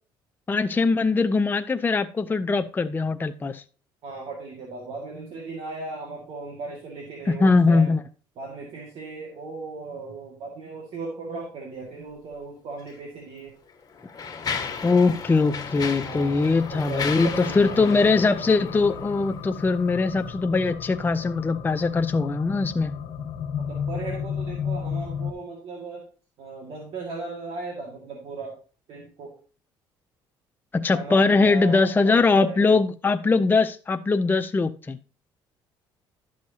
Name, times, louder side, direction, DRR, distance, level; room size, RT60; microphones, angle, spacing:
voice 1, 0.5-3.6 7.3-8.0 14.8-22.9 30.7-35.0, left 3 dB, 20° left, 0.5 m, -21 dB
voice 2, 4.0-7.9 8.4-13.5 16.0-18.1 23.6-26.1 26.4-28.6 28.9-29.4 30.9-32.7, right 3 dB, 65° right, 2.0 m, -37 dB
Mechanisms, 12.8-12.9 13.7-19.4, left 6 dB, 35° left, 1.5 m, -34 dB
sound 1, 15.3-25.3, left 7 dB, 75° left, 1.2 m, -34 dB
11.5 x 6.3 x 2.8 m
supercardioid pair, 85°, 10 cm